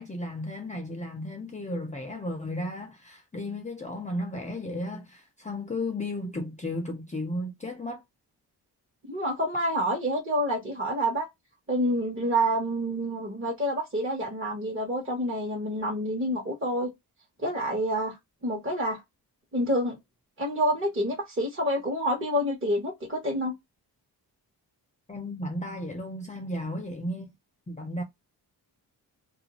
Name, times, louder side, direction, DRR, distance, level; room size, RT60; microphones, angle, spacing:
voice 1, 0.0-8.0 25.1-27.3 27.7-28.0, left 1 dB, 15° left, 0.6 m, -34 dB
voice 2, 9.1-11.3 11.7-16.9 17.4-18.2 18.4-19.0 19.5-20.0 20.4-23.5, equal, 30° right, 1.1 m, -28 dB
2.5 x 2.3 x 2.9 m
cardioid pair, 75°, 42 cm